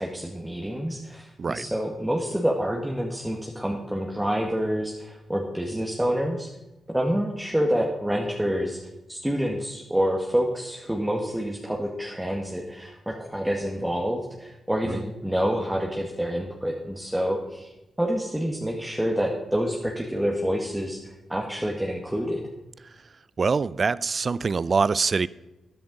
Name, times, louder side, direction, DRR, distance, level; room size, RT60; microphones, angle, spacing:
voice 1, 0.0-6.5 6.9-17.7 18.0-22.4, equal, 10° right, -1 dB, 1.7 m, -27 dB
voice 2, 23.4-25.3, right 4 dB, 50° right, 20 dB, 0.4 m, -24 dB
13.0 x 10.0 x 4.0 m, 1.0 s
supercardioid pair, 45°, 0 cm